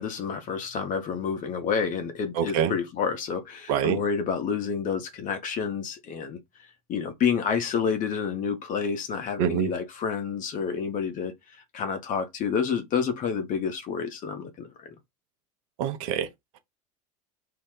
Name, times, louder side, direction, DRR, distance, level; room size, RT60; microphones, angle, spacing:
voice 1, 0.0-6.4 6.9-11.3 11.7-15.0, left 6 dB, 45° left, 1.0 m, -29 dB
voice 2, 2.3-2.7 3.7-4.0 9.4-9.7 15.8-16.3, right 9 dB, 65° right, 0.8 m, -25 dB
2.8 x 2.1 x 3.7 m
hypercardioid pair, 90°, 19 cm